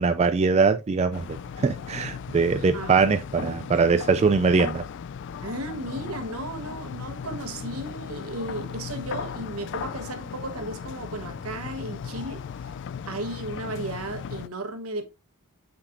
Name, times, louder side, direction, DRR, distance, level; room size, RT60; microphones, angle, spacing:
voice 1, 0.0-4.8, right 4 dB, 30° right, 0.3 m, -22 dB
sound 1, 1.1-14.5, left 7 dB, 55° left, 0.3 m, -37 dB
voice 2, 2.5-2.9 3.4-3.7 5.4-12.7 13.1-15.1, right 1 dB, 70° right, 1.2 m, -35 dB
8.6 x 5.1 x 2.6 m
head